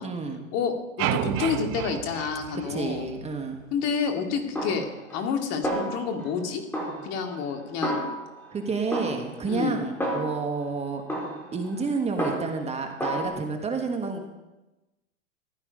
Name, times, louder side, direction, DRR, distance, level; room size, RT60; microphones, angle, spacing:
voice 1, 0.0-0.5 2.7-3.6 8.5-11.0 11.5-14.2, right 4 dB, 15° right, 4 dB, 1.5 m, -30 dB
voice 2, 0.5-3.0 3.7-4.9 5.1-6.6 7.0-8.0 9.5-9.8, left 6 dB, 40° left, 5 dB, 2.2 m, -29 dB
sound 1, 1.0-3.3, right 13 dB, 35° right, 0.7 m, -30 dB
Snare drum, 4.6-5.4 5.6-6.4 6.7-8.5 8.9-10.6 11.1-12.7 13.0-13.3, equal, 5° left, 4.3 m, -32 dB
15.5 x 12.0 x 5.3 m, 1.0 s
hypercardioid pair, 115°, 41 cm